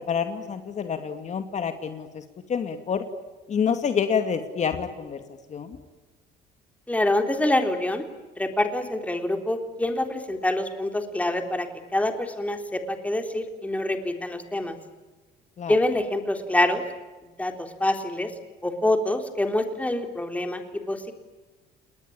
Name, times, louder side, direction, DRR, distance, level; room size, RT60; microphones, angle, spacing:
voice 1, 0.0-2.2 2.5-3.0 3.5-5.2 5.5-5.8 15.6-15.8, left 7 dB, 45° left, 7 dB, 2.4 m, -27 dB
voice 2, 6.9-8.0 8.4-14.8 15.7-16.8 17.4-18.3 18.6-21.1, left 1 dB, 10° left, 5 dB, 3.7 m, -26 dB
30.0 x 20.5 x 8.8 m, 1.2 s
cardioid pair, 110°, 17 cm